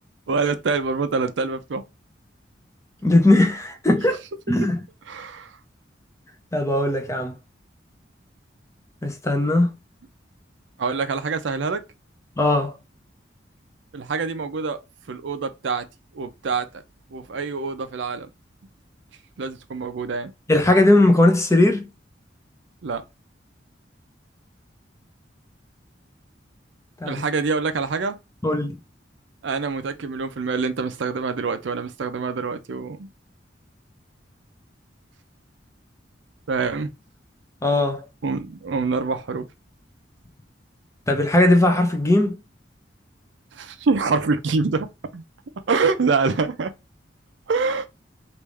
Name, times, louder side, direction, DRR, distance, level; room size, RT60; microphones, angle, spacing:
voice 1, 0.3-1.8 5.1-5.6 10.8-11.8 13.9-14.8 15.1-15.9 16.1-16.8 17.1-18.3 19.4-20.3 22.8-23.0 27.0-28.2 29.4-33.1 36.5-36.9 38.2-39.4 43.5-45.2 45.7-46.7 47.5-47.9, right 4 dB, 75° right, 0.5 m, -25 dB
voice 2, 3.0-4.2 4.5-4.8 6.5-7.3 9.0-9.7 12.4-12.8 20.5-21.9 27.0-27.2 28.4-28.7 37.6-38.0 41.1-42.4, left 1 dB, 15° left, 0.6 m, -18 dB
3.5 x 2.5 x 3.1 m
head